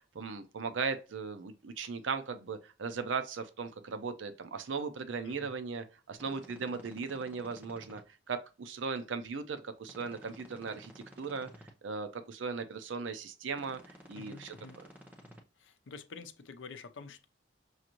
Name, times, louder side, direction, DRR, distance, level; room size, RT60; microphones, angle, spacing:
voice 1, 0.0-8.0 8.3-11.5 11.8-13.8 14.1-14.5, right 5 dB, 90° right, 0.5 m, -37 dB
sound 1, 6.1-8.0 9.8-11.7 13.5-15.4, equal, 10° right, 0.7 m, -54 dB
voice 2, 14.1-14.8 15.6-17.3, left 4 dB, 85° left, 0.5 m, -48 dB
6.4 x 2.5 x 2.9 m
head